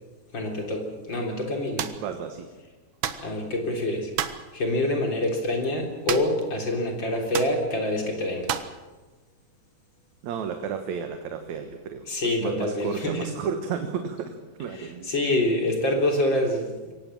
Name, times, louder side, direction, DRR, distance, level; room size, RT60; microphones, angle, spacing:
voice 1, 0.3-1.9 3.2-4.1 4.5-8.6 12.1-13.3 14.8-16.7, left 1 dB, 35° left, 2 dB, 4.0 m, -26 dB
sound 1, 1.8-2.0 3.0-3.3 4.2-4.5 6.1-6.5 6.7-6.8 7.3-7.6 8.5-8.8, right 9 dB, 80° right, 1.1 m, -30 dB
voice 2, 2.0-2.5 10.2-15.1, right 7 dB, 65° right, 6 dB, 2.5 m, -33 dB
23.5 x 18.0 x 7.5 m, 1.3 s
omnidirectional pair, 3.7 m